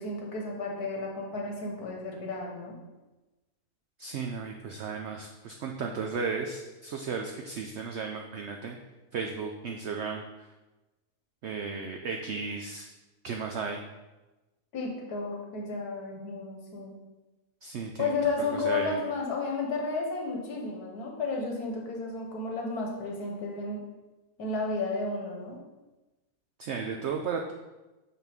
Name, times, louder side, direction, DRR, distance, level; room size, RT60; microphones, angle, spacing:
voice 1, 0.0-2.7 14.7-16.9 18.0-23.8 24.4-25.6, left 3 dB, 80° left, 0 dB, 1.7 m, -32 dB
voice 2, 4.0-8.8 9.1-10.5 11.4-12.9 13.2-13.8 17.6-18.1 18.5-19.0 26.6-27.5, right 5 dB, 65° right, 2 dB, 0.7 m, -34 dB
6.1 x 5.7 x 3.5 m, 1.1 s
omnidirectional pair, 1.6 m